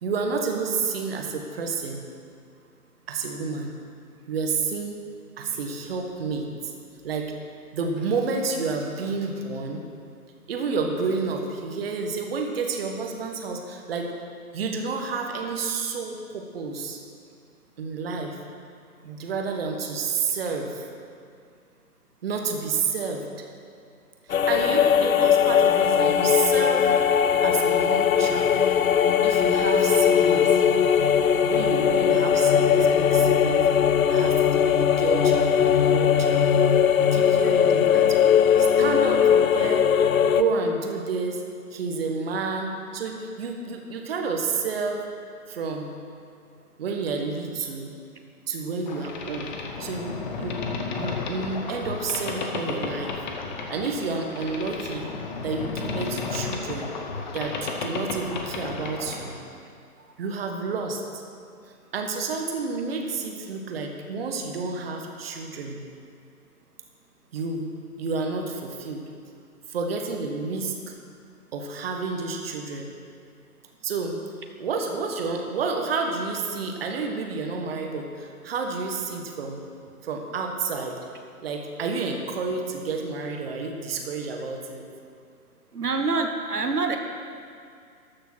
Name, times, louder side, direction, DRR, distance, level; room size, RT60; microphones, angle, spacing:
voice 1, 0.0-2.0 3.1-3.7 4.3-5.0 5.4-6.7 7.0-7.3 7.7-9.8 10.5-14.1 14.5-17.0 17.8-18.4 19.0-20.9 22.2-23.3 24.3-26.9 27.4-28.7 29.2-30.6 31.5-33.7 34.1-36.5 37.0-38.2 38.6-39.8 40.2-41.4 41.7-45.0 45.5-46.0 46.8-48.0 48.5-49.5 49.8-50.6 51.0-53.2 53.7-55.2 55.4-56.9 57.3-59.4 60.2-61.2 61.9-65.8 67.3-67.7 68.0-69.0 69.7-70.9 71.5-72.9 73.8-74.2 74.6-79.6 80.0-81.0 81.4-84.8, right 4 dB, 40° right, 3 dB, 1.3 m, -30 dB
sound 1, 24.3-40.4, left 8 dB, 65° left, 0.6 m, -20 dB
Boat Water vehicle, 48.9-59.4, left 4 dB, 30° left, 1.0 m, -33 dB
voice 2, 85.7-87.0, right 3 dB, 85° right, 4 dB, 1.2 m, -25 dB
13.0 x 6.7 x 6.2 m, 2.3 s
figure-of-eight pair, 135°, 45 cm